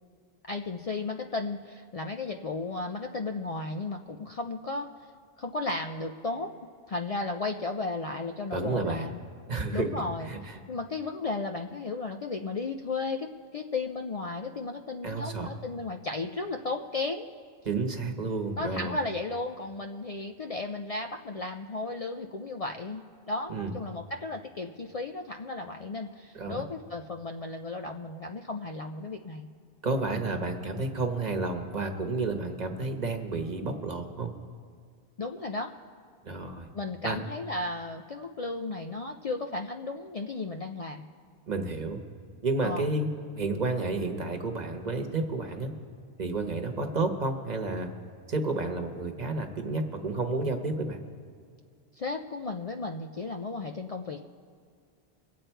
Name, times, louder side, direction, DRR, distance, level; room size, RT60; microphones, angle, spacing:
voice 1, 0.5-4.9 5.4-6.5 6.9-9.2 9.7-17.3 18.6-29.5 35.2-35.7 36.7-41.0 42.6-42.9 51.9-54.3, left 3 dB, 45° left, 3 dB, 0.5 m, -34 dB
voice 2, 8.5-9.2 9.5-9.9 10.3-10.6 15.0-15.5 17.6-19.0 23.5-23.7 26.3-26.6 29.8-34.3 36.2-36.7 37.0-37.2 41.5-42.0 42.4-43.1 43.4-45.7 46.2-47.9 48.3-51.0, right 3 dB, 45° right, 4 dB, 1.2 m, -31 dB
23.5 x 8.5 x 4.5 m, 2.2 s
omnidirectional pair, 1.0 m